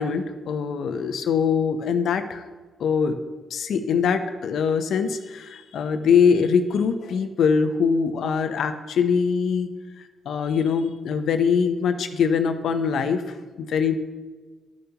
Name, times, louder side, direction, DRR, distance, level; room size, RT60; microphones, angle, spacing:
voice 1, 0.0-2.4 2.8-3.2 3.5-13.2 13.6-13.9, left 6 dB, 70° left, 8 dB, 0.7 m, -23 dB
13.5 x 6.8 x 3.0 m, 1.3 s
supercardioid pair, 55°, 0 cm